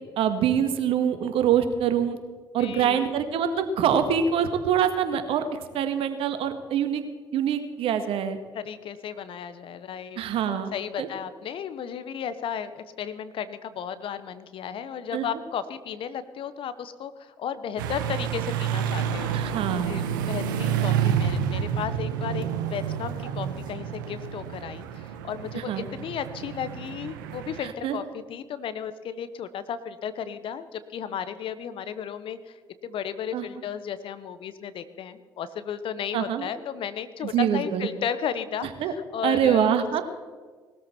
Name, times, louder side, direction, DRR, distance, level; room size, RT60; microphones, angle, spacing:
voice 1, 0.2-2.2 2.5-5.4 5.7-7.0 7.3-8.4 10.2-10.7 11.0-11.1 15.1-15.3 19.3-19.9 25.5-25.8 27.6-28.0 33.3-33.4 36.1-36.5 37.2-37.9 38.8-38.9 39.2-40.0, right 8 dB, 65° right, 9 dB, 1.7 m, -24 dB
voice 2, 2.6-3.1 8.5-10.2 10.4-19.6 19.9-20.0 20.3-32.6 32.8-39.9, left 8 dB, 60° left, 13 dB, 1.1 m, -34 dB
sound 1, 17.8-27.6, right 8 dB, 85° right, 1.1 m, -29 dB
19.5 x 13.5 x 4.5 m, 1.4 s
hypercardioid pair, 55°, 10 cm